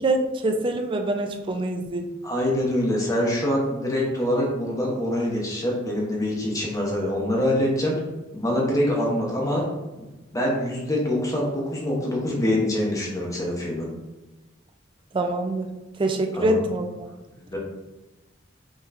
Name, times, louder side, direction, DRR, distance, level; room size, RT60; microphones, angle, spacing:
voice 1, 0.0-2.1 15.1-15.7 16.0-16.9, right 1 dB, 25° right, 5 dB, 0.4 m, -24 dB
voice 2, 2.2-8.0 8.3-9.6 10.3-13.9 16.3-16.6 17.5-17.6, left 1 dB, 15° left, -3 dB, 0.7 m, -24 dB
5.3 x 2.9 x 2.4 m, 1.1 s
head